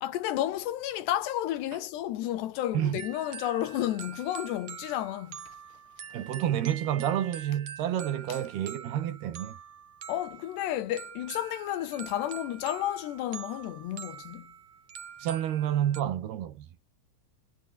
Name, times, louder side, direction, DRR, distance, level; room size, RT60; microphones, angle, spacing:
voice 1, 0.0-5.4 10.1-14.5, left 13 dB, 75° left, 3.4 m, -32 dB
sound 1, 3.0-16.0, right 8 dB, 45° right, 3.3 m, -45 dB
voice 2, 6.1-9.6 15.2-16.7, right 11 dB, 65° right, 3.6 m, -29 dB
omnidirectional pair, 5.2 m